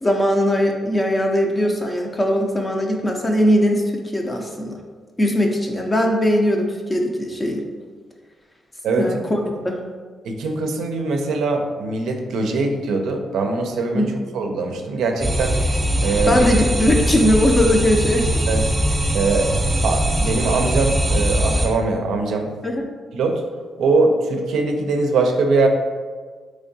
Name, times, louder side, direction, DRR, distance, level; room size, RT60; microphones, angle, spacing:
voice 1, 0.0-4.7 5.2-7.6 9.0-9.8 13.9-14.1 16.3-18.3 22.6-22.9, equal, 25° left, 1 dB, 0.4 m, -20 dB
voice 2, 10.2-15.6 16.0-16.5 18.5-18.7 19.1-19.5 19.8-22.5 23.1-23.4 23.8-25.7, right 3 dB, 85° right, 3 dB, 0.4 m, -21 dB
sound 1, 15.2-21.7, equal, 20° right, 0.6 m, -21 dB
3.5 x 3.2 x 2.6 m, 1.5 s
cardioid pair, 75°, 0 cm